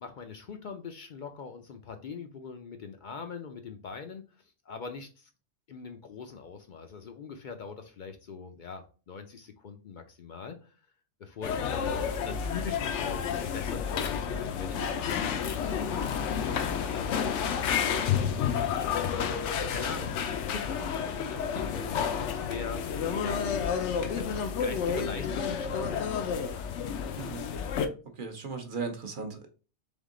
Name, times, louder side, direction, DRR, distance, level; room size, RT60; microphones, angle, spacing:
voice 1, 0.0-5.3 5.7-10.8 11.2-13.3 13.5-19.3 19.7-20.1 20.5-22.1 22.3-22.9 23.2-23.4 24.0-26.6, left 5 dB, 55° left, 6 dB, 0.6 m, -42 dB
sound 1, 11.4-27.9, left 7 dB, 80° left, 0.9 m, -30 dB
voice 2, 27.2-27.5 28.2-29.5, right 4 dB, 50° right, 5 dB, 0.8 m, -37 dB
3.6 x 3.5 x 3.7 m, 0.35 s
omnidirectional pair, 1.2 m